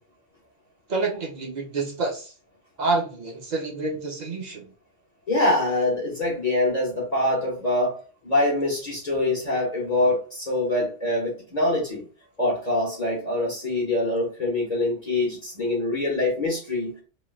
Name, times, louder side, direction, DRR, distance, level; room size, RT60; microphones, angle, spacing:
voice 1, 0.9-2.3 2.8-4.7, right 3 dB, 40° right, 1 dB, 0.9 m, -28 dB
voice 2, 5.3-8.0 8.2-12.1 12.4-16.9, left 2 dB, 40° left, -2 dB, 0.9 m, -24 dB
3.2 x 2.5 x 2.4 m, 0.36 s
omnidirectional pair, 1.2 m